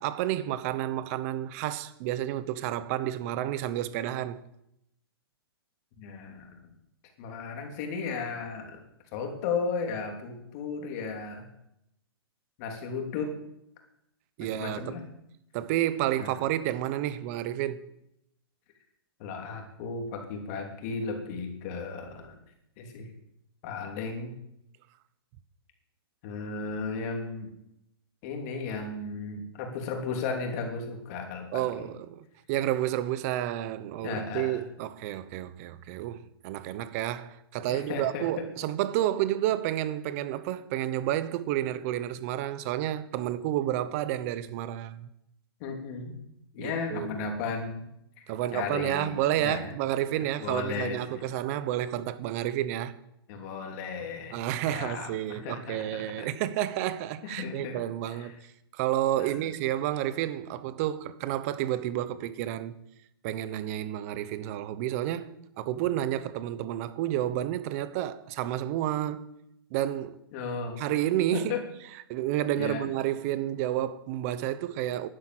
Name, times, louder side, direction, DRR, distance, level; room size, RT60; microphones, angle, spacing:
voice 1, 0.0-4.4 14.4-15.0 15.5-17.8 31.5-45.1 46.6-47.2 48.3-52.9 54.3-58.4 58.7-62.8 63.2-69.3 69.7-70.2 70.8-71.6 72.1-75.1, right 13 dB, 35° right, 1.0 m, -30 dB
voice 2, 6.0-6.6 7.2-8.8 9.1-11.5 12.6-13.3 14.4-15.0 16.2-16.3 19.2-22.3 22.8-23.1 23.6-24.3 26.2-27.5 28.2-31.9 34.0-34.6 37.6-38.4 45.6-46.1 46.5-47.8 48.2-49.7 50.1-51.2 53.3-54.4 54.6-56.3 57.2-57.8 58.1-58.3 59.2-59.5 70.3-70.8 71.3-71.6 72.6-72.9, left 5 dB, 40° left, 3.3 m, -35 dB
11.5 x 10.5 x 7.8 m
hypercardioid pair, 150°, 13 cm